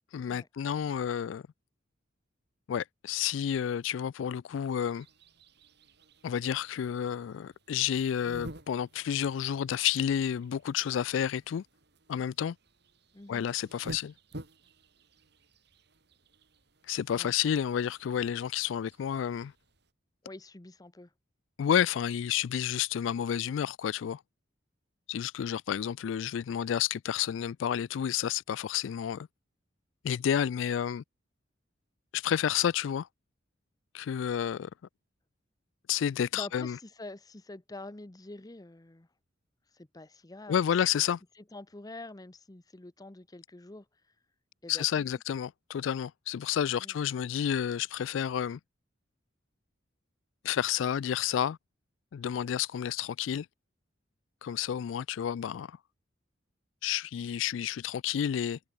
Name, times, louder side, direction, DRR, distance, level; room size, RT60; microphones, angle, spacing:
voice 1, 0.1-1.4 2.7-5.1 6.2-11.6 12.1-12.6 13.3-14.1 16.9-19.5 21.6-24.2 25.1-29.3 30.0-31.0 32.1-33.1 33.9-34.7 35.9-36.8 40.5-41.2 44.7-48.6 50.4-51.6 52.1-53.5 54.4-55.8 56.8-58.6, left 9 dB, 75° left, 0.3 m, -30 dB
sound 1, 4.5-19.9, right 1 dB, 60° right, 5.3 m, -52 dB
voice 2, 13.1-13.5 17.1-17.3 20.2-21.1 36.3-39.1 39.7-40.6 41.4-43.9 44.6-45.2 46.8-46.9, left 2 dB, 20° left, 0.8 m, -46 dB
head